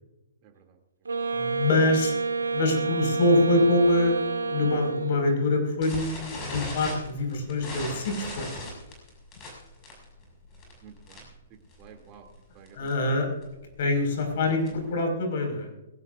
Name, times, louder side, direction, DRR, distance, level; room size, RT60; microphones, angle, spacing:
voice 1, 0.4-0.8 10.8-11.3 11.8-12.3 12.5-13.2 14.4-15.1, right 7 dB, 35° right, 3 dB, 2.9 m, -51 dB
Wind instrument woodwind instrument, 1.0-5.4, right 4 dB, 80° right, 1.8 m, -29 dB
voice 2, 1.3-2.1 2.5-8.5 12.7-13.3 13.8-15.7, left 2 dB, 55° left, 3 dB, 5.6 m, -25 dB
sound 1, 5.8-11.4 11.7-12.0 12.3-12.4 12.7-12.9 13.4-15.0, left 1 dB, 25° left, 6.4 m, -38 dB
21.0 x 16.5 x 2.7 m, 1.0 s
figure-of-eight pair, 120°, 0 cm